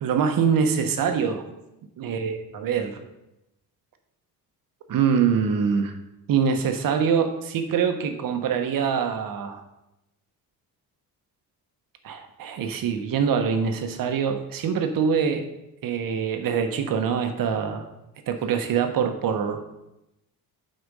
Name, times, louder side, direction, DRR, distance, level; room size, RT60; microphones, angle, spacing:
voice 1, 0.0-1.4 2.0-3.0 4.9-6.0 6.3-9.6 12.0-15.5 15.8-17.8 18.3-19.6, right 6 dB, 65° right, 6 dB, 1.0 m, -24 dB
8.2 x 4.3 x 5.3 m, 0.90 s
cardioid pair, 135°, 37 cm